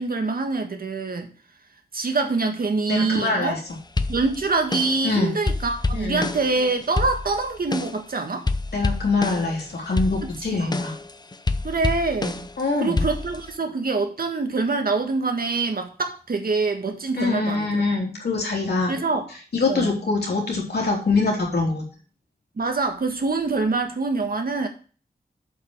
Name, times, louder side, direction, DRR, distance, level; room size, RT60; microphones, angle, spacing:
voice 1, 0.0-1.3 1.9-3.6 4.1-8.5 10.5-10.7 11.6-12.4 12.8-17.8 18.9-19.2 19.7-19.9 22.6-24.7, right 3 dB, 65° right, 5 dB, 1.7 m, -25 dB
voice 2, 2.9-3.6 5.0-5.4 5.9-6.3 8.7-10.9 12.6-13.0 17.2-18.9 19.5-21.8, left 3 dB, 85° left, -1 dB, 3.5 m, -24 dB
sound 1, 4.0-5.1 5.5-8.1 8.5-9.6 9.9-12.6 13.0-13.6, left 3 dB, 25° left, 0.6 m, -27 dB
8.0 x 5.6 x 6.5 m, 0.38 s
wide cardioid pair, 110°, 16 cm